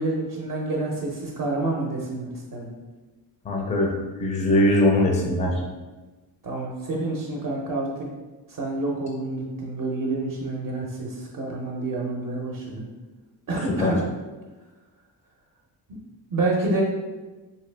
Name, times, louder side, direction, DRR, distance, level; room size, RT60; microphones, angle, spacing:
voice 1, 0.0-2.7 6.4-8.1 8.6-12.9 13.5-14.0 16.3-16.8, right 2 dB, 50° right, -2 dB, 0.6 m, -28 dB
voice 2, 3.4-3.9 4.2-5.6 13.8-13.9, left 1 dB, 15° left, 0 dB, 0.4 m, -21 dB
3.2 x 2.9 x 3.2 m, 1.2 s
cardioid pair, 145°, 44 cm